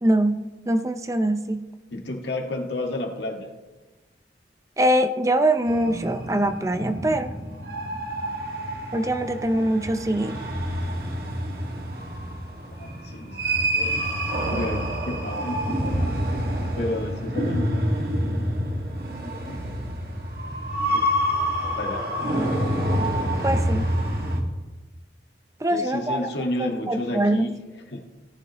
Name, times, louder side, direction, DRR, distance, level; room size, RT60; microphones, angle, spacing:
voice 1, 0.0-1.7 4.8-7.3 8.9-10.4 23.4-23.9 25.6-26.3 26.6-27.5, right 1 dB, 15° right, 9 dB, 0.5 m, -23 dB
voice 2, 1.9-3.5 12.7-14.1 14.5-16.2 16.8-18.4 19.2-19.8 20.8-22.0 25.7-28.1, left 1 dB, 80° left, 3 dB, 1.6 m, -32 dB
sound 1, 5.7-24.4, equal, 55° right, 1.9 m, -27 dB
17.5 x 11.5 x 3.0 m, 1.2 s
head